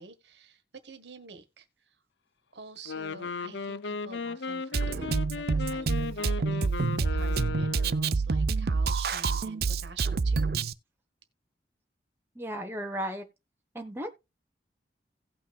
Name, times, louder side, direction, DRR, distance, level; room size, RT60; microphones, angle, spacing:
voice 1, 0.0-2.0 2.5-10.6, right 4 dB, 80° right, 1.4 m, -48 dB
Wind instrument woodwind instrument, 2.8-8.0, left 4 dB, 80° left, 0.6 m, -36 dB
Drum kit, 4.7-10.7, right 4 dB, 60° right, 0.5 m, -27 dB
voice 2, 12.3-13.3 13.7-14.1, right 1 dB, 15° right, 1.1 m, -35 dB
17.0 x 6.0 x 2.3 m
head